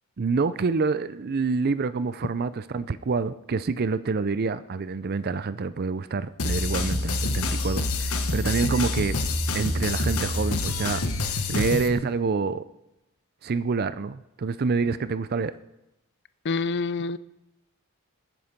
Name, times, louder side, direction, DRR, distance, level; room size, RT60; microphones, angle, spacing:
voice 1, 0.2-9.2 9.5-12.6 13.4-15.5, right 4 dB, 45° right, 15 dB, 0.4 m, -27 dB
sound 1, 6.4-11.9, left 2 dB, 75° left, 1.4 m, -27 dB
voice 2, 16.4-17.2, left 4 dB, 50° left, 16 dB, 0.5 m, -26 dB
20.5 x 9.7 x 5.2 m, 0.92 s
head